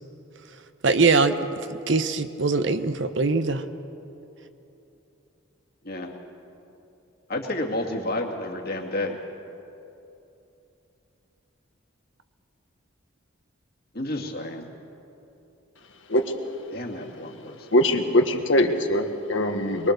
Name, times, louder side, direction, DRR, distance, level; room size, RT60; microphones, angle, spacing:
voice 1, 0.8-3.6, right 4 dB, 60° right, 9 dB, 1.0 m, -22 dB
voice 2, 7.3-9.2 13.9-14.7 16.7-17.7, left 1 dB, 50° left, 1 dB, 2.4 m, -30 dB
voice 3, 17.7-19.9, left 1 dB, 65° left, 5 dB, 1.6 m, -22 dB
23.0 x 23.0 x 6.7 m, 2.9 s
head